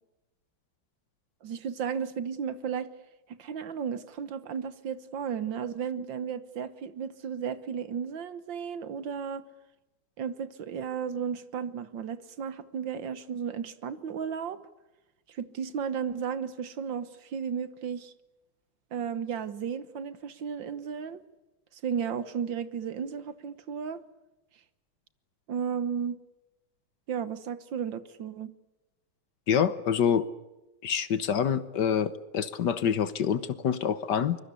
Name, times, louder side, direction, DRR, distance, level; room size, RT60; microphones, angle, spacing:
voice 1, 1.4-2.9 3.4-9.4 10.2-14.6 15.3-18.1 18.9-21.2 21.8-24.0 25.5-26.2 27.1-28.5, right 7 dB, 65° right, 13 dB, 1.8 m, -34 dB
voice 2, 29.5-30.3 30.8-34.4, left 8 dB, 60° left, 14 dB, 1.5 m, -26 dB
24.0 x 22.5 x 8.3 m, 1.0 s
omnidirectional pair, 2.2 m